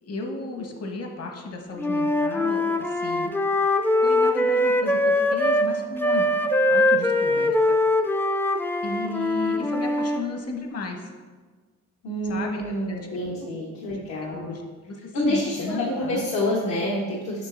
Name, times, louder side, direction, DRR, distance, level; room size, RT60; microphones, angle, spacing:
voice 1, 0.0-3.3 4.0-6.3 6.7-7.8 8.8-11.1 12.3-13.0 13.3-13.5 13.9-14.6 14.9-16.3, left 2 dB, 55° left, 2 dB, 1.1 m, -34 dB
Wind instrument woodwind instrument, 1.8-5.7 6.0-10.2, left 1 dB, 5° left, 0.3 m, -22 dB
voice 2, 12.0-14.5 15.1-17.5, left 1 dB, 80° left, -5 dB, 1.2 m, -27 dB
7.4 x 5.8 x 2.6 m, 1.4 s
cardioid pair, 90°, 30 cm